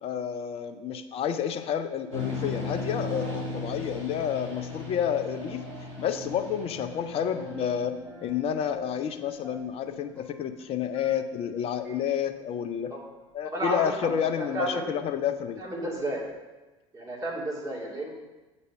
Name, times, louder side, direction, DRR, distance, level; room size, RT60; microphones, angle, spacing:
voice 1, 0.0-5.6 6.0-12.9 13.3-15.6, left 8 dB, 40° left, 9 dB, 0.6 m, -30 dB
sound 1, 2.1-7.9, left 3 dB, 70° right, 1.5 m, -36 dB
sound 2, 6.1-11.5 11.8-12.0, equal, 10° left, 2.2 m, -46 dB
voice 2, 13.4-14.9 15.6-16.2 16.9-18.1, right 1 dB, 20° right, -4 dB, 2.3 m, -32 dB
7.9 x 4.1 x 5.3 m, 1.1 s
figure-of-eight pair, 70°, 16 cm